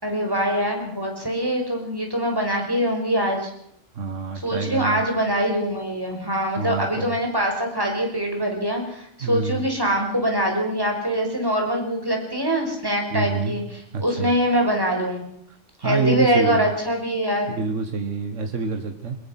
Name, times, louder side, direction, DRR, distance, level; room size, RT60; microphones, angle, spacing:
voice 1, 0.0-3.5 4.4-15.2 15.8-17.5, equal, 20° right, 1 dB, 5.6 m, -23 dB
voice 2, 4.0-5.0 6.6-7.1 9.2-9.6 13.1-13.6 13.9-14.3 15.8-16.7 17.5-19.2, right 4 dB, 75° right, 5 dB, 1.9 m, -27 dB
22.5 x 21.5 x 5.9 m, 0.70 s
omnidirectional pair, 1.3 m